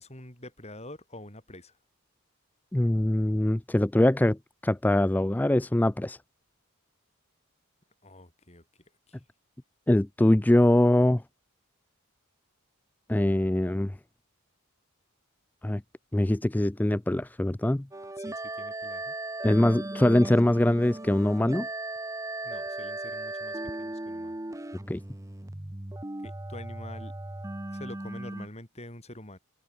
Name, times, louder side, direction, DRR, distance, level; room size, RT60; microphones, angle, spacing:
voice 1, 0.0-1.7 8.0-8.6 9.1-9.2 18.2-19.1 22.4-24.4 26.2-27.1 27.7-29.4, left 1 dB, 30° left, 6.9 m, -46 dB
voice 2, 2.7-6.2 9.9-11.2 13.1-14.0 15.6-15.8 16.1-17.9 19.4-21.7 24.9-25.0, left 1 dB, 10° left, 0.4 m, -23 dB
sound 1, 17.9-28.5, right 2 dB, 15° right, 0.8 m, -37 dB
open air
head